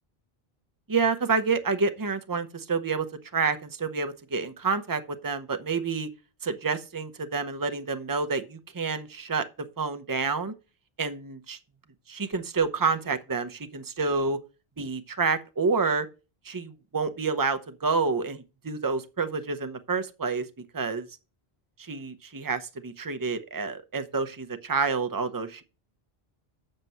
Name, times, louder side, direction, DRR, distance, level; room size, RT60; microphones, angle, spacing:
voice 1, 0.9-3.1 3.3-6.1 6.4-9.4 9.8-10.5 11.0-11.6 12.1-14.4 14.8-16.1 16.4-20.4 20.7-21.1 21.8-25.6, right 4 dB, 20° right, 0.8 m, -28 dB
7.7 x 6.7 x 5.6 m
omnidirectional pair, 1.0 m